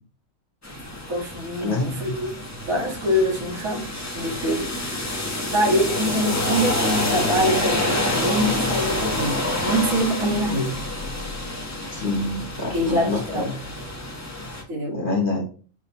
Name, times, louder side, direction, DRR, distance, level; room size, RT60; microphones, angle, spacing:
sound 1, 0.6-14.6, left 1 dB, 20° left, 0.4 m, -27 dB
voice 1, 1.1-2.3 2.7-3.9 4.1-4.7 5.5-10.7 12.7-13.6 14.7-15.0, equal, 70° right, 1.7 m, -24 dB
voice 2, 1.6-2.1 11.9-13.5 14.9-15.4, left 2 dB, 45° left, 0.7 m, -26 dB
4.9 x 2.1 x 4.1 m
omnidirectional pair, 1.5 m